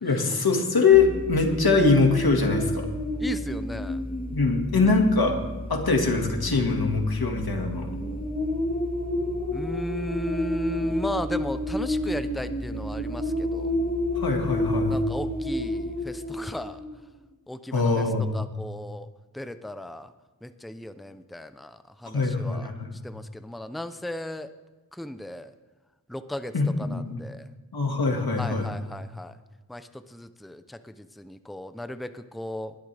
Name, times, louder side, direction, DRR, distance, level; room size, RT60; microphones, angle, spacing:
voice 1, 0.0-2.9 4.3-5.4 5.7-7.9 14.2-15.0 17.7-18.3 22.1-22.9 26.5-27.2 27.7-28.7, left 4 dB, 90° left, 2 dB, 2.0 m, -23 dB
sound 1, 0.9-16.9, left 1 dB, 25° left, 2.9 m, -30 dB
voice 2, 3.2-4.0 9.5-13.8 14.9-16.8 17.5-19.1 19.3-20.1 20.4-22.7 23.0-24.5 24.9-25.5 26.1-27.5 28.4-29.4 29.7-32.7, left 1 dB, ahead, 10 dB, 0.7 m, -36 dB
20.5 x 12.0 x 3.4 m, 1.2 s
wide cardioid pair, 55°, 36 cm